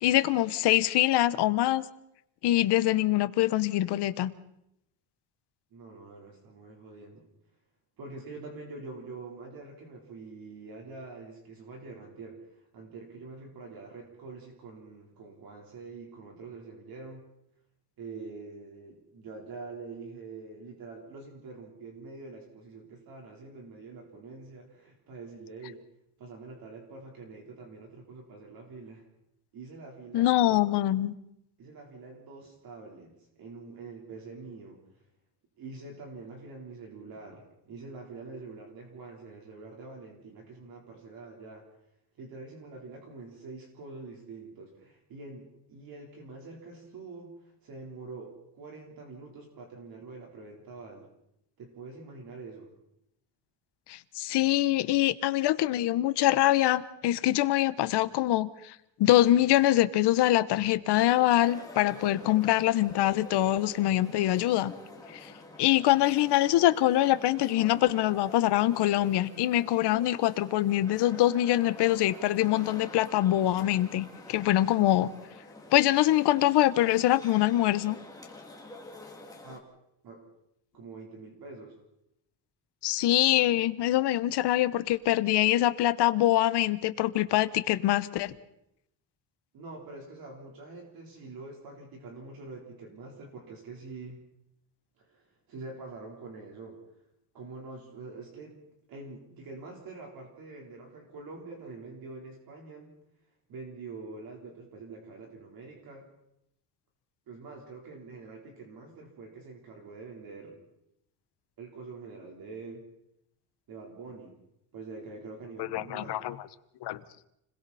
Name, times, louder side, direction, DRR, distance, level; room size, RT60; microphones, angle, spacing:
voice 1, 0.0-1.8 2.4-4.3 30.1-31.1 53.9-58.7 59.0-64.7 65.1-65.3 65.6-75.1 75.7-78.0 82.8-88.3 115.7-116.3 116.8-117.0, left 14 dB, 65° left, 14 dB, 1.1 m, -24 dB
voice 2, 5.7-7.2 8.0-17.2 18.0-25.8 26.2-29.1 29.5-30.6 31.6-35.0 35.6-41.7 42.2-51.1 51.6-52.7 79.4-79.7 80.0-80.3 80.7-81.8 89.5-94.2 95.0-96.8 97.3-98.6 98.9-102.9 103.5-106.1 107.3-110.6 111.6-112.9 113.7-114.4 114.7-116.2, right 3 dB, 55° right, 0 dB, 4.0 m, -45 dB
sound 1, 61.0-79.6, left 3 dB, 10° left, 2.5 m, -48 dB
30.0 x 21.5 x 4.2 m, 0.80 s
cardioid pair, 170°, 43 cm